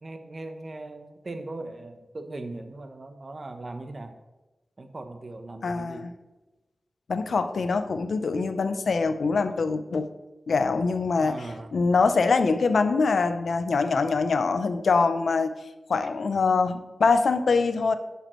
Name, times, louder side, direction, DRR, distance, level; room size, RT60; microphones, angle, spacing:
voice 1, 0.0-4.1 4.8-6.1 11.2-11.7, right 2 dB, 45° right, 7 dB, 0.8 m, -39 dB
voice 2, 5.6-6.1 7.1-10.1 10.5-11.4 11.7-15.5 15.9-17.9, left 4 dB, 85° left, 10 dB, 0.5 m, -24 dB
10.0 x 7.0 x 3.1 m, 1.1 s
wide cardioid pair, 100°, 0 cm